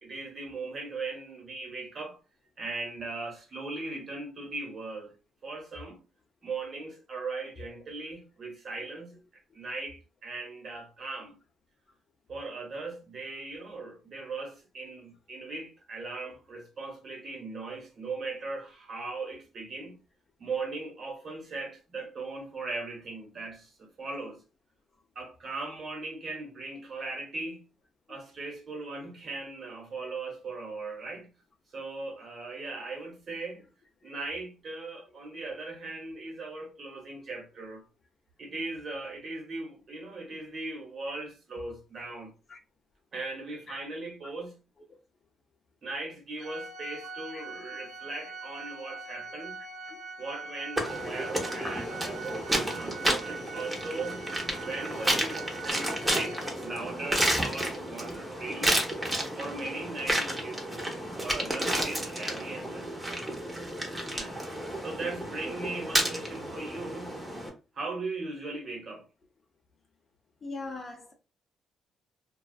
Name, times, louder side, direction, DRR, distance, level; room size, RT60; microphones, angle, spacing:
voice 1, 0.0-2.2 2.6-5.1 5.4-6.0 6.4-9.2 9.5-11.4 12.3-20.0 20.4-24.4 25.1-27.6 28.1-31.3 31.7-33.6 34.0-37.8 38.4-42.3 43.1-44.6 45.8-49.6 50.2-54.3 54.6-58.9 59.3-63.2 63.5-64.3 64.8-67.2 67.7-69.0, right 3 dB, 50° right, 1.1 m, -39 dB
Organ, 46.4-57.0, right 4 dB, 80° right, 0.8 m, -43 dB
sound 1, 50.8-67.5, right 1 dB, 10° right, 0.8 m, -31 dB
voice 2, 70.4-71.1, left 3 dB, 40° left, 0.5 m, -40 dB
2.4 x 2.3 x 2.3 m
cardioid pair, 90°, 0 cm